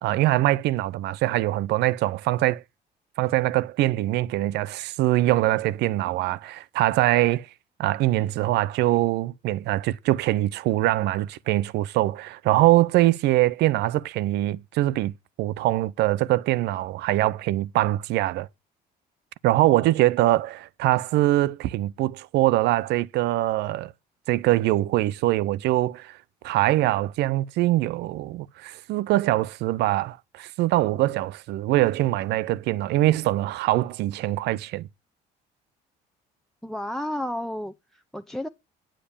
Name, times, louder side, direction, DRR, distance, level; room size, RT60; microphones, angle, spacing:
voice 1, 0.0-2.6 3.2-7.5 7.8-15.1 15.4-18.5 19.4-23.9 24.3-26.2 26.4-34.9, right 16 dB, 80° right, 0.7 m, -23 dB
voice 2, 36.6-38.5, left 1 dB, ahead, 0.8 m, -32 dB
10.0 x 7.6 x 6.8 m
cardioid pair, 110°, 17 cm